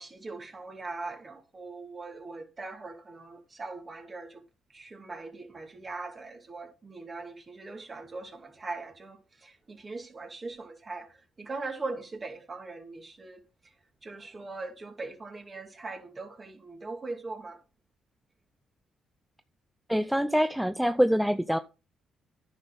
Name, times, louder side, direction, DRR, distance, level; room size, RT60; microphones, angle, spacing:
voice 1, 0.0-4.4 4.7-11.1 11.4-13.4 14.0-17.6, right 3 dB, 30° right, 2.2 m, -40 dB
voice 2, 19.9-21.6, equal, ahead, 0.5 m, -25 dB
10.0 x 6.3 x 3.8 m
cardioid pair, 90°, 0 cm